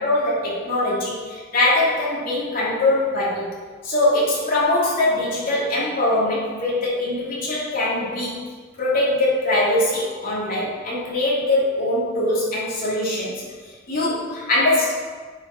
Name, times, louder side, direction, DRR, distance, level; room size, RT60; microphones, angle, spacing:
voice 1, 0.0-3.5 3.8-8.4 8.8-13.4 13.9-14.9, left 1 dB, 45° left, -7 dB, 2.8 m, -22 dB
7.5 x 5.3 x 5.9 m, 1.6 s
head